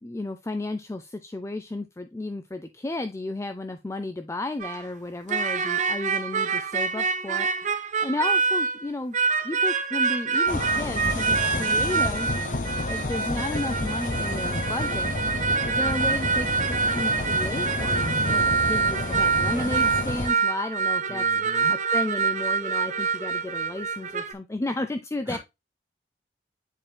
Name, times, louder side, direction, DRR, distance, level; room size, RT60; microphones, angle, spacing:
voice 1, 0.0-9.2 9.4-15.1 15.6-21.2 21.7-25.4, left 2 dB, 15° left, 9 dB, 0.4 m, -33 dB
sound 1, 4.6-4.8 5.3-8.9 9.1-24.3, right 5 dB, 45° right, 0.6 m, -26 dB
sound 2, 10.5-20.3, left 2 dB, 45° left, 0.9 m, -30 dB
voice 2, 21.1-21.7 25.3-25.4, right 1 dB, 10° right, 1 dB, 1.8 m, -38 dB
9.9 x 4.4 x 2.2 m, 0.23 s
head